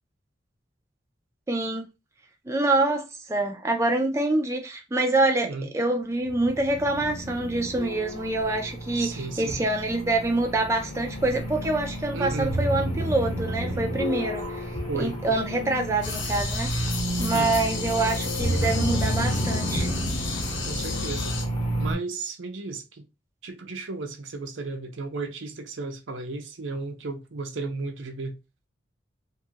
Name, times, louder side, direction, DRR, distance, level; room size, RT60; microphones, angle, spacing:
voice 1, 1.5-1.9 2.5-19.9, right 2 dB, 15° right, 0.3 m, -26 dB
sound 1, 6.2-21.9, right 1 dB, 25° left, 0.9 m, -31 dB
voice 2, 8.9-9.6 12.1-12.6 14.9-15.4 17.3-17.6 20.6-21.4 21.8-23.0 23.4-28.4, right 3 dB, 75° right, 0.6 m, -34 dB
sound 2, 16.0-21.4, left 3 dB, 70° left, 0.7 m, -32 dB
2.9 x 2.4 x 2.7 m
head